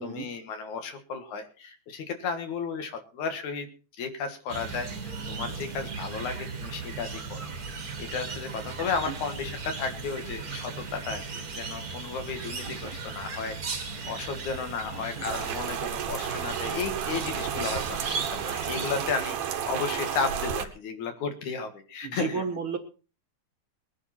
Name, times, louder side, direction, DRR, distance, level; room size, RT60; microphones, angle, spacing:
voice 1, 0.0-3.7 4.0-7.5 8.0-11.2 11.6-13.6 14.0-22.4, left 5 dB, 70° left, 6 dB, 3.0 m, -34 dB
sound 1, 4.5-19.1, right 4 dB, 35° right, 1.7 m, -37 dB
voice 2, 8.8-9.2 12.6-13.0 14.9-15.3 22.0-22.8, right 5 dB, 50° right, 5 dB, 1.8 m, -35 dB
Rain, 15.3-20.6, right 8 dB, 80° right, 2.8 m, -32 dB
21.0 x 9.8 x 4.3 m, 0.35 s
omnidirectional pair, 3.6 m